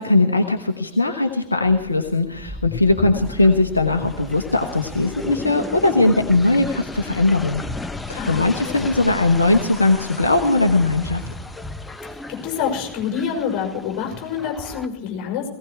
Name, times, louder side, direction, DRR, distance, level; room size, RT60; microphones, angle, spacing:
voice 1, 0.0-7.6 8.1-11.2, left 2 dB, 80° left, 4 dB, 1.1 m, -19 dB
sound 1, 1.6-14.9, left 2 dB, 10° left, 0.8 m, -34 dB
voice 2, 8.2-8.8 12.0-15.5, left 7 dB, 40° left, 2 dB, 5.6 m, -27 dB
18.5 x 17.0 x 4.6 m, 0.79 s
figure-of-eight pair, 90°, 0 cm